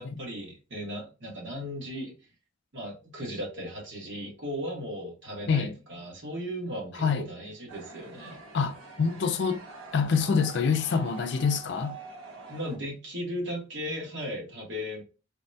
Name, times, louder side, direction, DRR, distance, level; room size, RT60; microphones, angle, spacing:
voice 1, 0.0-2.1 2.7-8.4 12.5-15.0, equal, 60° right, 1.4 m, -36 dB
sound 1, 7.7-12.8, right 4 dB, 80° right, 0.9 m, -45 dB
voice 2, 8.5-9.6 9.9-12.0, left 5 dB, 55° left, 0.4 m, -26 dB
4.0 x 2.1 x 2.7 m
head